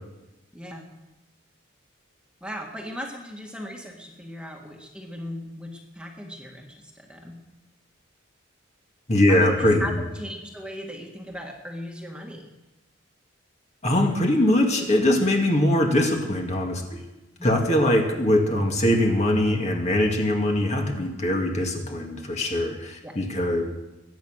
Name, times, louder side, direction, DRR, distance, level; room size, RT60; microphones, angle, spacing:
voice 1, 0.5-0.9 2.4-7.4 9.3-12.5 17.4-17.6 23.0-23.2, equal, 5° right, 0 dB, 1.9 m, -37 dB
voice 2, 9.1-10.0 13.8-17.0 17.4-23.6, left 1 dB, 35° left, 2 dB, 2.2 m, -22 dB
22.0 x 9.3 x 6.5 m, 1.0 s
head